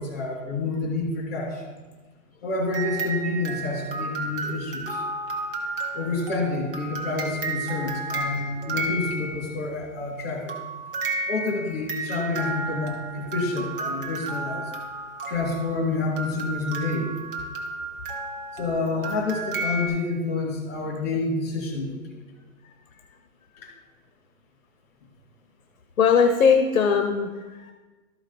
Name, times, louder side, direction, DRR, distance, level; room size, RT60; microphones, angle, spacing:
voice 1, 0.0-1.6 2.4-5.0 5.9-10.5 11.3-14.7 15.3-17.1 18.5-22.2 23.6-23.7, left 3 dB, 45° left, -1 dB, 2.9 m, -28 dB
sound 1, 2.7-9.7 10.5-19.9, right 2 dB, 40° right, 1.2 m, -32 dB
voice 2, 26.0-27.7, left 6 dB, 70° left, 5 dB, 0.9 m, -20 dB
13.0 x 4.9 x 4.2 m, 1.3 s
hypercardioid pair, 180°, 42 cm